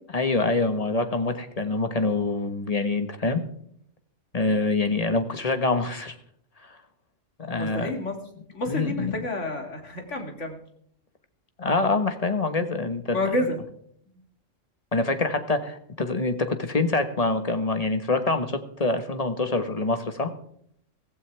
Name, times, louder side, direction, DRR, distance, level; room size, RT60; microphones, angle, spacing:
voice 1, 0.1-3.4 4.3-6.2 6.6-6.8 7.4-7.9 8.7-9.1 11.6-13.2 14.9-20.3, left 3 dB, 30° left, 8 dB, 1.5 m, -25 dB
voice 2, 7.5-8.2 8.5-10.6 13.1-13.6, left 1 dB, 70° left, 3 dB, 2.9 m, -29 dB
16.0 x 16.0 x 3.5 m, 0.65 s
omnidirectional pair, 1.3 m